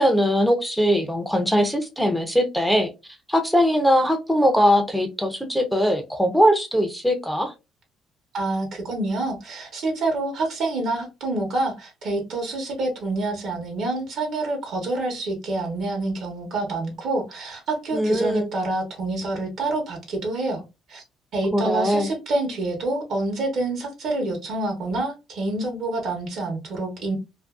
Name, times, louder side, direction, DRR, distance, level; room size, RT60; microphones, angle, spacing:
voice 1, 0.0-2.9 3.3-7.5 17.9-18.5 21.5-22.1, equal, ahead, 0.5 m, -21 dB
voice 2, 8.3-20.6 20.9-21.0 21.3-27.2, right 2 dB, 65° right, 0.9 m, -27 dB
2.5 x 2.2 x 2.2 m
cardioid pair, 110°, 0 cm